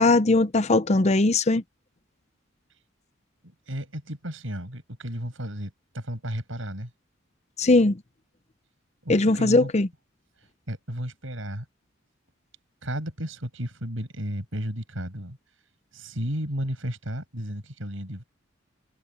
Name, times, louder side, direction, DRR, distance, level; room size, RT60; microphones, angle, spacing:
voice 1, 0.0-1.6 7.6-8.0 9.1-9.9, left 2 dB, 35° left, 0.7 m, -20 dB
voice 2, 3.4-6.9 9.0-9.7 10.4-11.7 12.8-15.4 15.9-18.2, equal, 70° right, 7.3 m, -33 dB
head